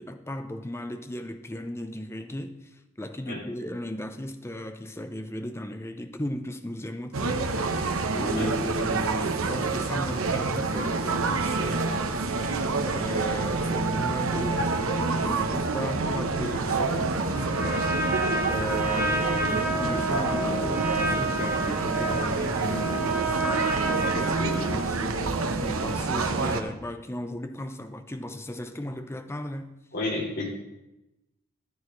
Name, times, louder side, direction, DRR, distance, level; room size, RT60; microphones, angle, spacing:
voice 1, 0.0-2.6 3.0-7.4 8.1-17.9 18.5-29.7, left 1 dB, 10° left, 0.6 m, -36 dB
sound 1, 7.1-26.6, right 3 dB, 85° right, 0.9 m, -27 dB
Trumpet, 17.2-24.9, right 2 dB, 10° right, 2.1 m, -29 dB
voice 2, 24.4-24.7 29.9-30.5, left 2 dB, 50° left, 3.1 m, -31 dB
14.0 x 11.0 x 3.2 m
head